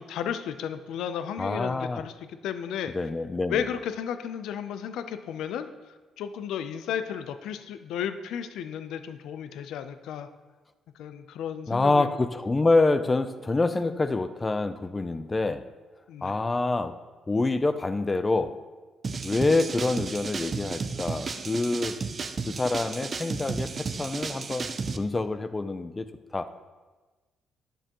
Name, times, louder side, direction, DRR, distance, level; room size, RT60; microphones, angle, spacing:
voice 1, 0.0-2.9 3.5-5.7 6.2-10.3 11.0-12.1 16.1-16.4, left 8 dB, 85° left, 10 dB, 0.4 m, -33 dB
voice 2, 1.4-2.0 2.9-3.6 11.7-15.7 16.2-16.9 17.3-18.5 19.2-22.0 22.5-26.1 26.3-26.7, left 3 dB, 25° left, 11 dB, 0.4 m, -26 dB
sound 1, 19.0-25.0, right 4 dB, 40° right, 0.5 m, -33 dB
9.8 x 6.8 x 3.0 m, 1.3 s
cardioid pair, 90°, 0 cm